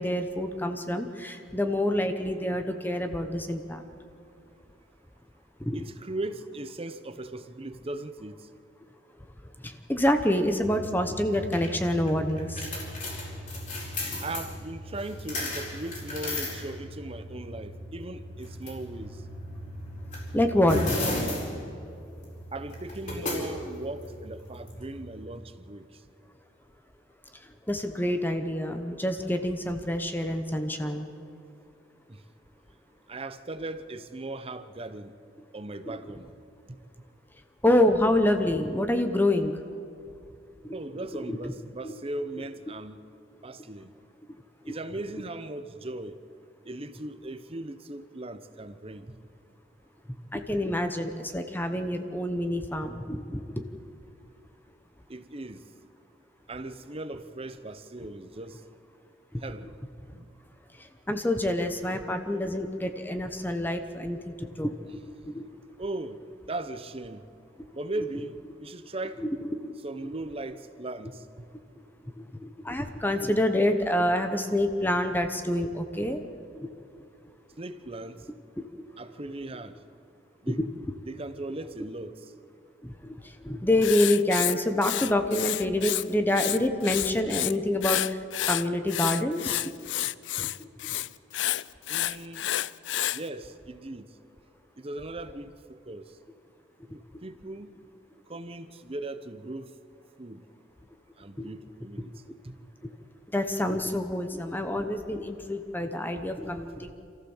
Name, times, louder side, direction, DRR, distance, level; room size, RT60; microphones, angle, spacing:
voice 1, 0.0-3.8 5.6-5.8 9.6-12.7 20.3-20.8 27.7-31.1 37.6-39.5 41.3-41.5 41.8-41.9 44.6-44.7 50.3-53.6 59.3-59.4 60.8-65.4 69.2-69.7 72.4-76.2 82.8-83.2 83.4-89.7 90.4-90.7 101.4-101.5 103.3-106.9, left 1 dB, 10° left, 1.0 m, -27 dB
voice 2, 5.7-8.5 14.2-19.2 22.5-26.0 32.1-32.2 33.1-35.2 35.5-36.3 36.7-36.8 40.7-43.0 43.4-44.0 44.7-46.2 46.6-49.2 55.1-55.7 56.5-58.6 59.4-59.7 60.1-60.3 64.9-65.0 65.8-66.2 66.5-67.3 67.7-68.3 68.6-69.2 69.8-71.5 77.6-78.3 79.0-79.8 80.4-80.6 81.1-82.3 91.9-92.5 93.1-94.1 94.8-96.2 96.9-97.7 98.3-99.7 100.2-100.4 101.2-102.6, right 2 dB, 30° right, 0.9 m, -38 dB
sound 1, 10.6-25.4, left 1 dB, 45° left, 4.4 m, -36 dB
Writing, 83.8-86.0 86.3-87.5 87.8-93.2, left 14 dB, 80° left, 0.4 m, -29 dB
27.5 x 14.5 x 7.3 m
head